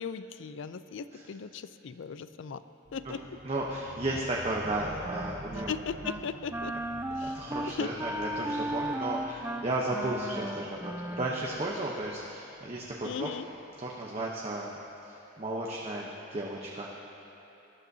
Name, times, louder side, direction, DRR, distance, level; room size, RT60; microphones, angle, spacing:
voice 1, 0.0-2.6 2.9-3.2 5.7-6.7 7.2-7.4 7.7-7.9 13.0-13.5, left 6 dB, 60° left, 13 dB, 0.4 m, -37 dB
sound 1, 2.8-13.9, equal, 65° right, 3.2 m, -50 dB
voice 2, 3.4-5.7 7.2-13.3 13.8-14.8 15.0-17.1, right 1 dB, 30° right, -3 dB, 0.8 m, -34 dB
Wind instrument woodwind instrument, 4.6-5.7 6.0-6.3 6.5-11.8, right 1 dB, 10° right, 0.3 m, -36 dB
19.5 x 12.0 x 2.7 m, 3.0 s
head